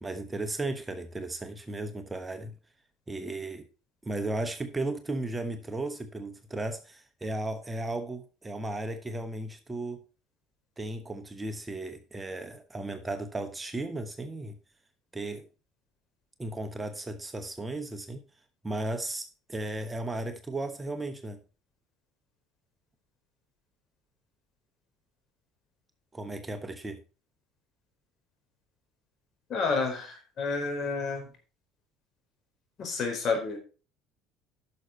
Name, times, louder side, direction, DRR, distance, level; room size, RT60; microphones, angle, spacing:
voice 1, 0.0-2.6 3.1-3.7 4.0-10.0 10.8-14.6 15.1-15.5 16.4-18.2 18.6-21.4 26.1-27.0, right 2 dB, 15° right, 1.1 m, -35 dB
voice 2, 29.5-31.3 32.8-33.6, left 4 dB, 45° left, 4.3 m, -30 dB
11.0 x 6.5 x 4.2 m
supercardioid pair, 100°, 0 cm